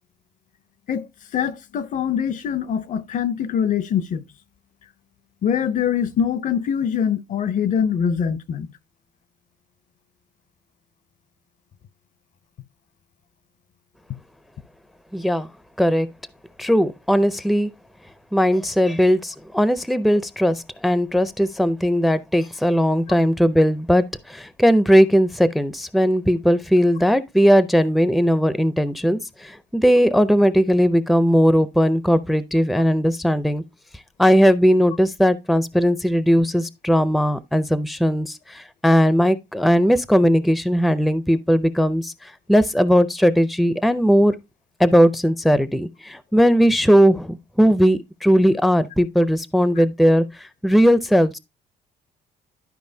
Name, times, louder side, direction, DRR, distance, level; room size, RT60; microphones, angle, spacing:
voice 1, 1.3-4.2 5.4-8.7, left 8 dB, 50° left, 0.6 m, -23 dB
voice 2, 15.1-15.5 15.8-16.1 16.6-17.7 18.3-33.6 34.2-44.3 44.8-51.4, equal, ahead, 0.5 m, -18 dB
11.5 x 4.9 x 2.7 m
cardioid pair, 110°, 17 cm